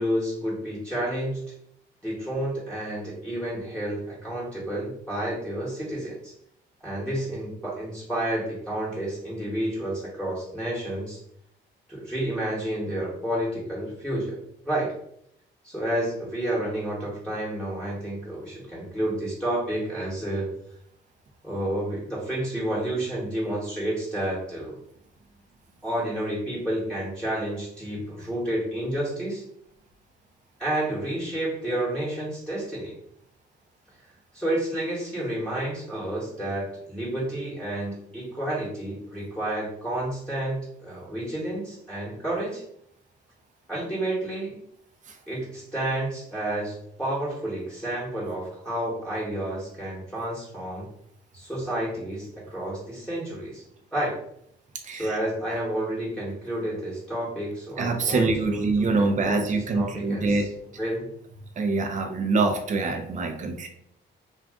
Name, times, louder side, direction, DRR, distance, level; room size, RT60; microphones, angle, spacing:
voice 1, 0.0-1.4 2.0-6.3 6.8-11.2 11.9-14.4 14.6-14.9 15.6-20.5 21.4-24.7 25.8-29.4 30.6-32.9 34.3-42.6 43.7-44.6 45.3-50.9 51.3-53.6 53.9-54.2 54.9-58.7 59.0-60.5 60.8-61.1, right 1 dB, 5° left, -7 dB, 1.1 m, -30 dB
voice 2, 54.8-55.2 57.8-60.4 61.6-63.7, right 3 dB, 40° right, 4 dB, 0.6 m, -25 dB
2.5 x 2.3 x 3.5 m, 0.71 s
cardioid pair, 90°, 20 cm